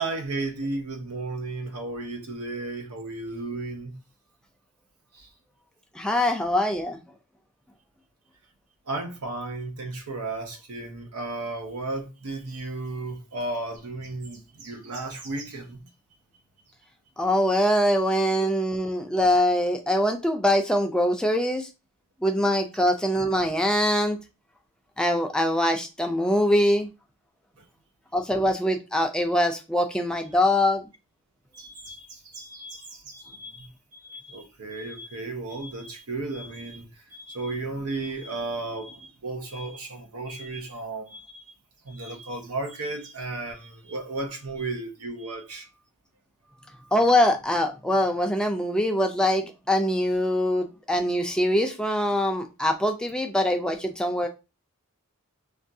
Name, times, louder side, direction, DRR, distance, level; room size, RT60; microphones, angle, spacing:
voice 1, 0.0-4.0 5.2-5.3 8.9-15.8 27.6-27.7 31.5-41.3 41.8-45.7, right 2 dB, 85° right, 0.7 m, -34 dB
voice 2, 5.9-7.2 17.2-21.7 22.2-24.2 25.0-26.9 28.1-30.9 46.7-54.3, left 1 dB, 5° left, 0.4 m, -23 dB
3.3 x 2.3 x 2.7 m
head